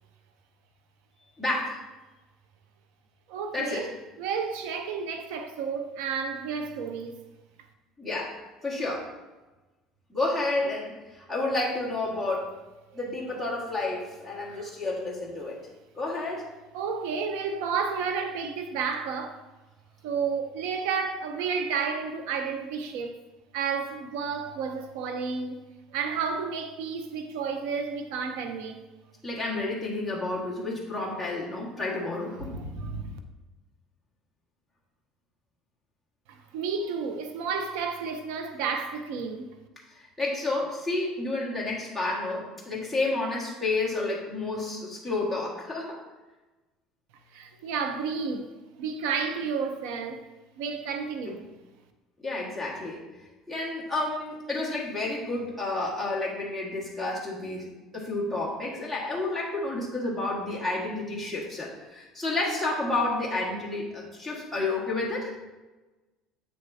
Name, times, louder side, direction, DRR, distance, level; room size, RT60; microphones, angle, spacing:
voice 1, 1.4-1.8 3.5-3.9 8.0-8.4 8.6-9.1 10.1-12.5 12.9-15.6 16.0-16.5 29.2-32.5 39.9-46.0 51.2-51.4 52.2-53.0 53.5-65.3, left 2 dB, 5° right, 1.7 m, -30 dB
voice 2, 3.3-3.9 4.2-7.2 14.5-14.6 16.7-19.4 20.0-23.2 23.5-25.6 25.9-28.8 32.5-33.2 36.3-39.5 47.3-50.2 50.6-51.5, right 5 dB, 80° right, 0.7 m, -31 dB
8.7 x 6.5 x 2.7 m
cardioid pair, 165°, 0 cm